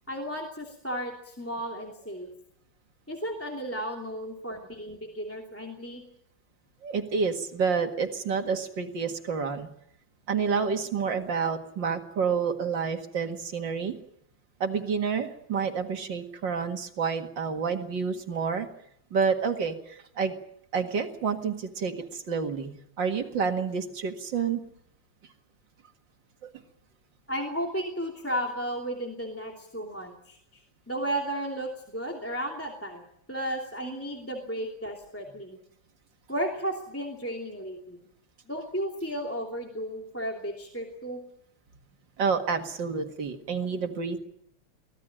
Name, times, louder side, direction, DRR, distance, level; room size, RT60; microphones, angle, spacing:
voice 1, 0.1-2.3 3.1-6.0 27.3-30.6 30.9-33.0 33.3-35.6 36.3-38.0 38.5-41.2, right 1 dB, 5° left, 0 dB, 2.7 m, -34 dB
voice 2, 4.3-4.6 6.8-9.7 10.3-14.0 14.6-18.7 19.1-20.4 20.7-24.6 26.4-26.5 42.2-44.2, right 5 dB, 75° right, 5 dB, 2.6 m, -29 dB
24.5 x 17.5 x 8.9 m, 0.73 s
omnidirectional pair, 2.0 m